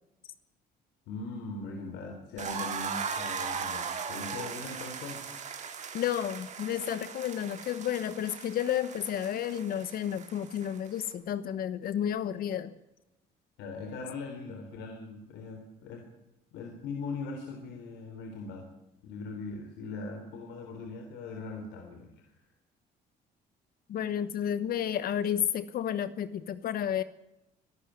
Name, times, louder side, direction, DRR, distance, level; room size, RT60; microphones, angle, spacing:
voice 1, 1.1-5.2 13.6-16.0 16.5-18.7 19.0-22.4, left 3 dB, 85° left, 3 dB, 3.8 m, -40 dB
sound 1, 2.4-11.1, right 6 dB, 45° right, 3.2 m, -38 dB
voice 2, 5.9-12.7 23.9-27.0, left 10 dB, 60° left, 14 dB, 1.1 m, -31 dB
24.0 x 12.0 x 9.5 m, 0.90 s
cardioid pair, 110°, 17 cm